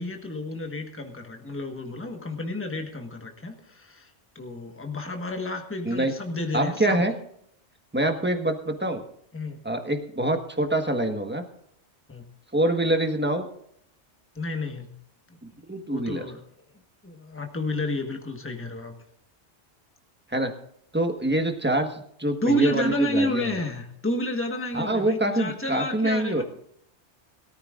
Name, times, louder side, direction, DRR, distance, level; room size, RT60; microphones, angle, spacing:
voice 1, 0.0-4.1 4.3-7.0 9.3-9.6 12.1-12.3 14.3-14.9 15.9-16.4 17.0-18.9 22.4-26.4, left 1 dB, 10° left, 4 dB, 1.3 m, -30 dB
voice 2, 6.5-7.1 7.9-9.0 9.6-11.4 12.5-13.5 15.7-16.2 20.3-20.5 20.9-23.6 24.7-26.4, right 1 dB, 10° right, 5 dB, 1.3 m, -25 dB
21.5 x 14.0 x 2.5 m, 0.69 s
omnidirectional pair, 1.2 m